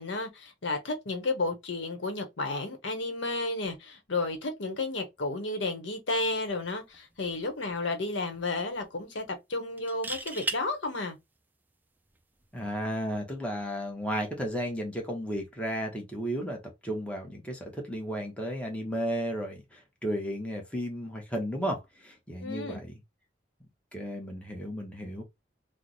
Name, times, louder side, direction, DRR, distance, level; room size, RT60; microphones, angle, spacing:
voice 1, 0.0-11.2 22.4-22.8, left 2 dB, 70° left, 0.8 m, -32 dB
sound 1, 6.9-7.2 7.5-7.6 9.8-10.6 12.4-12.7, right 3 dB, 10° right, 0.3 m, -34 dB
voice 2, 12.5-23.0 23.9-25.2, equal, 5° left, 0.8 m, -34 dB
3.1 x 2.0 x 3.8 m
head